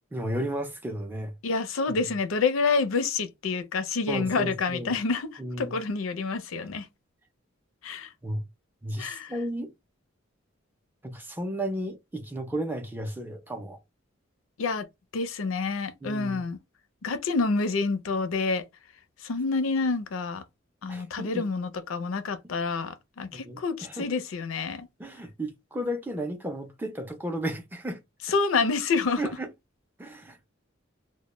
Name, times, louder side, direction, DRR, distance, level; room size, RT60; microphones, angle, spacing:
voice 1, 0.1-1.3 1.9-2.0 4.1-5.0 5.4-5.8 8.2-8.4 8.8-9.7 11.0-13.8 16.0-16.4 20.9-21.4 23.3-24.0 25.0-28.0 29.2-29.5 30.0-30.4, right 1 dB, 10° right, 0.4 m, -33 dB
voice 2, 1.4-6.9 7.8-8.1 9.0-9.3 14.6-14.9 15.1-16.6 17.0-18.6 19.2-20.4 20.8-24.9 28.3-29.2, left 4 dB, 85° left, 0.5 m, -28 dB
2.1 x 2.0 x 3.0 m
head